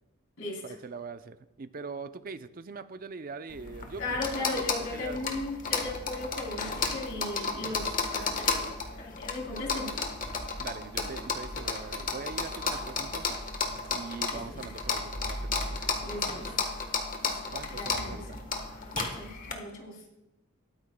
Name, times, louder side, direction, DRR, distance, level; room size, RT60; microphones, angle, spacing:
voice 1, 0.6-5.4 10.6-13.4 13.9-16.2 17.5-18.4, right 4 dB, 45° right, 11 dB, 0.5 m, -42 dB
sound 1, 3.5-19.5, left 4 dB, 40° left, 1.3 m, -33 dB
voice 2, 4.0-8.6 9.0-9.9 14.3-14.6 16.0-16.5 17.2-18.2 18.9-20.0, left 2 dB, 65° left, -1 dB, 3.2 m, -37 dB
sound 2, 6.2-7.1 7.5-8.0 8.3-8.6 8.9-9.0 9.3-9.4 9.8-14.3 14.7-17.0 17.6-19.0, right 2 dB, 25° right, 3.0 m, -50 dB
21.5 x 8.8 x 2.2 m, 0.92 s
head